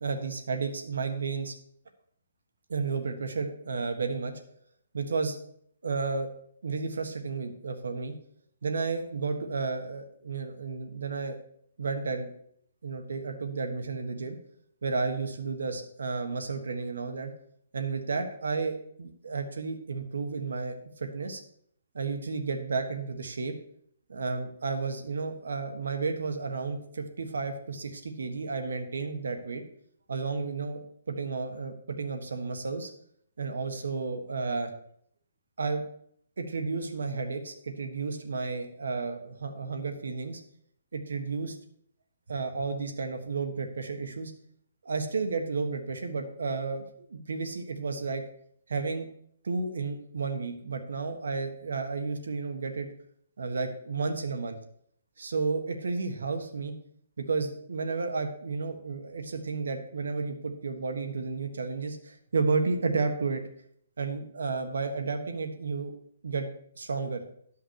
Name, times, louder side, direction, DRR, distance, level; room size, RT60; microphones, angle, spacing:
voice 1, 0.0-1.5 2.7-4.3 4.9-5.4 5.8-6.3 6.6-8.1 8.6-11.4 11.8-12.3 12.8-14.4 14.8-17.3 17.7-21.4 21.9-23.5 24.1-29.6 30.1-32.9 33.4-34.7 35.6-35.8 36.4-40.4 40.9-41.5 42.3-44.3 44.8-48.2 48.7-49.1 49.4-52.9 53.4-54.6 55.2-56.7 57.2-63.4 64.0-65.9 66.2-66.5 66.8-67.2, right 4 dB, 90° right, 5 dB, 1.5 m, -32 dB
11.5 x 5.7 x 4.7 m, 0.65 s
hypercardioid pair, 175°, 0 cm